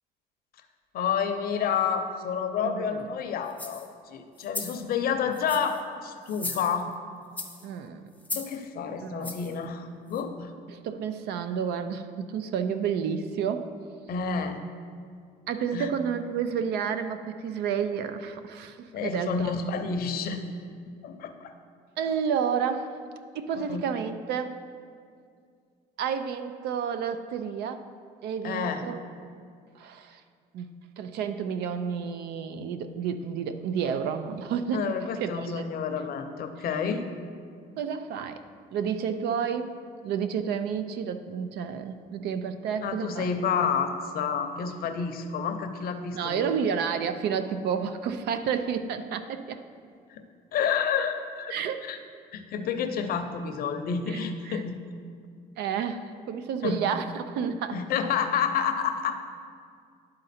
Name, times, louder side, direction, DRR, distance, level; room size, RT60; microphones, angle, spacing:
voice 1, 0.9-6.9 8.4-10.5 14.1-14.6 15.7-15.9 18.9-20.4 21.0-21.5 23.6-23.8 28.4-28.8 34.7-37.0 42.8-46.4 50.1-50.3 50.5-51.5 51.8-52.0 52.3-54.8 56.6-56.8 57.7-59.2, left 6 dB, 60° left, 7 dB, 0.6 m, -29 dB
voice 2, 2.6-3.1 7.6-8.0 9.0-9.3 10.7-13.7 15.5-19.5 22.0-23.0 23.3-24.6 26.0-27.8 28.2-29.0 29.8-30.2 30.5-30.7 31.0-34.9 35.2-35.6 37.8-38.4 38.7-43.3 46.1-49.6 51.5-51.9 54.1-54.2 54.4-54.6 55.6-57.8, right 7 dB, 75° right, 10 dB, 0.5 m, -30 dB
sound 1, 3.5-3.9 4.4-4.8 5.3-5.8 6.3-6.9 7.4-7.7 8.2-8.6 9.2-9.5 10.1-10.2, left 3 dB, 10° left, 0.6 m, -37 dB
11.0 x 3.8 x 4.2 m, 2.2 s
cardioid pair, 110°, 17 cm